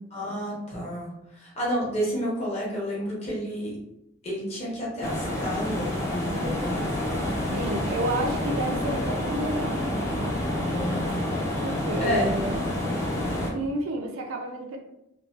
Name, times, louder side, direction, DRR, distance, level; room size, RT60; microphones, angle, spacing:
voice 1, 0.1-3.7 4.2-7.3 10.7-11.2 12.0-12.3, equal, 30° left, -5 dB, 0.9 m, -30 dB
sound 1, 5.0-13.5, left 1 dB, 15° left, 0.5 m, -28 dB
voice 2, 7.5-9.9 11.6-12.6 13.5-14.8, right 1 dB, 85° right, 2 dB, 0.5 m, -30 dB
3.1 x 2.2 x 2.3 m, 0.83 s
head